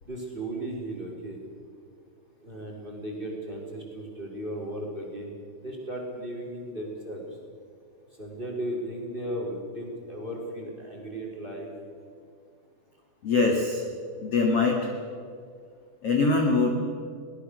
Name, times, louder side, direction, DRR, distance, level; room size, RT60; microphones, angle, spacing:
voice 1, 0.0-1.4 2.4-7.4 8.1-11.7, right 1 dB, 10° right, 0 dB, 3.6 m, -36 dB
voice 2, 13.2-13.8 14.2-14.8 16.0-16.7, left 3 dB, 45° left, 1 dB, 2.1 m, -23 dB
24.0 x 20.0 x 6.6 m, 2.3 s
omnidirectional pair, 5.3 m